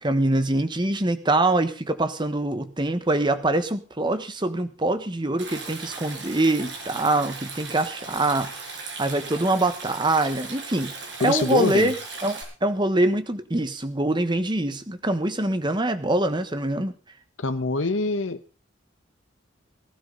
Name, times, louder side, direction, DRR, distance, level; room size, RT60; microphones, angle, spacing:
voice 1, 0.0-10.9 11.2-12.0 12.2-16.9, right 2 dB, 25° right, 10 dB, 1.2 m, -24 dB
Stream, 5.4-12.4, right 3 dB, 65° right, 5.8 m, -38 dB
voice 2, 11.2-11.9 17.4-18.4, left 3 dB, 80° left, 10 dB, 1.1 m, -24 dB
19.0 x 12.5 x 4.0 m, 0.33 s
head